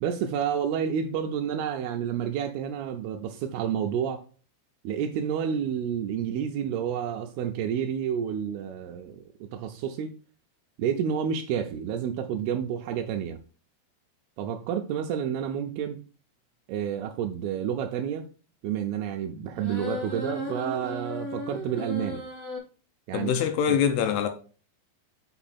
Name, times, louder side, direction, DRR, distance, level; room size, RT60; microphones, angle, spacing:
voice 1, 0.0-4.2 4.8-10.1 10.8-13.4 14.4-16.0 16.7-18.3 18.6-22.2 23.1-23.3, right 8 dB, 85° right, 2.3 m, -30 dB
sound 1, 19.5-22.6, equal, 25° right, 2.3 m, -35 dB
voice 2, 23.1-24.3, left 8 dB, 80° left, 2.5 m, -24 dB
7.0 x 5.4 x 4.2 m
omnidirectional pair, 5.0 m